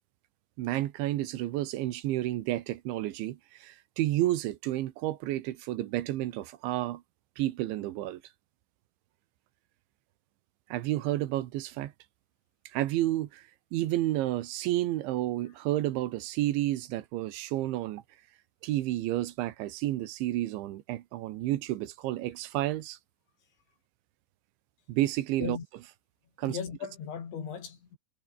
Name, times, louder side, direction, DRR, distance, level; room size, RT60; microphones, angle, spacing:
voice 1, 0.6-7.0 7.4-8.2 10.7-11.9 12.7-13.4 13.7-18.0 18.6-23.0 24.9-25.6 26.4-26.6, right 15 dB, 75° right, 3.5 m, -31 dB
voice 2, 26.4-28.0, left 7 dB, 65° left, 6.9 m, -37 dB
omnidirectional pair, 5.7 m